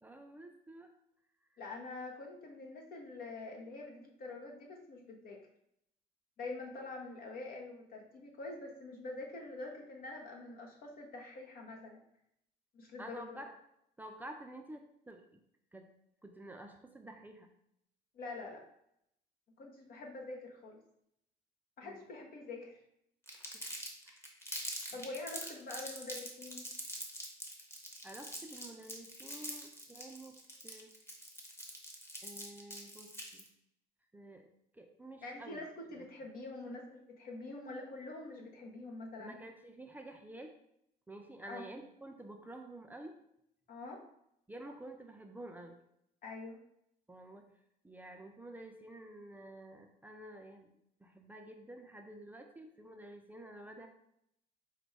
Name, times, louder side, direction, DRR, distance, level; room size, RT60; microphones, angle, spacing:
voice 1, 0.0-0.9 13.0-13.6 14.0-15.4 15.7-15.9 16.2-17.5 21.8-22.1 23.5-23.6 24.1-24.2 28.0-30.3 30.6-30.9 32.2-33.5 34.1-34.5 34.7-35.6 35.9-36.1 39.2-40.5 41.1-43.1 44.5-45.8 47.1-47.5 47.8-50.7 51.0-53.9, right 1 dB, 10° right, 3 dB, 0.5 m, -50 dB
voice 2, 1.6-5.4 6.4-12.0 12.7-13.4 18.1-18.6 19.6-20.8 21.8-22.8 24.9-26.7 35.2-39.3 41.4-41.7 43.7-44.0 46.2-46.6, left 2 dB, 60° left, 0 dB, 0.9 m, -45 dB
Crumpling crinkling, 23.3-33.5, equal, 15° left, 0.9 m, -44 dB
5.0 x 2.2 x 4.7 m, 0.75 s
cardioid pair, 110°, 17 cm